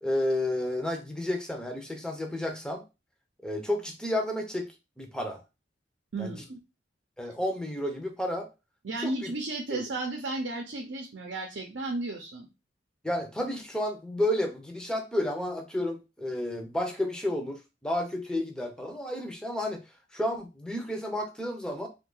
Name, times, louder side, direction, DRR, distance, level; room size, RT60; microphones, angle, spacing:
voice 1, 0.0-2.8 3.4-4.7 5.0-5.4 6.2-6.3 7.2-8.5 9.0-9.3 9.7-9.8 13.0-17.6 17.8-19.8 20.1-21.9, left 1 dB, 5° left, 3 dB, 0.6 m, -31 dB
voice 2, 6.1-6.6 8.8-12.5, right 2 dB, 75° right, 2 dB, 0.6 m, -34 dB
2.8 x 2.4 x 3.7 m, 0.27 s
head